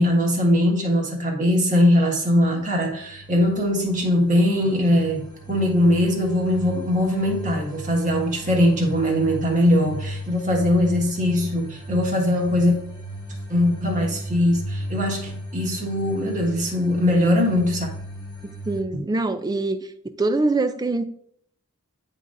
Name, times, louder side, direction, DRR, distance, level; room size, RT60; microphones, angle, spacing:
voice 1, 0.0-12.8 13.5-17.9 18.9-19.0, left 1 dB, 35° right, 1.5 m, -21 dB
sound 1, 2.5-18.8, equal, 20° left, 1.6 m, -36 dB
voice 2, 18.7-19.8 20.2-21.0, right 2 dB, 20° right, 0.4 m, -23 dB
9.9 x 4.0 x 2.5 m
head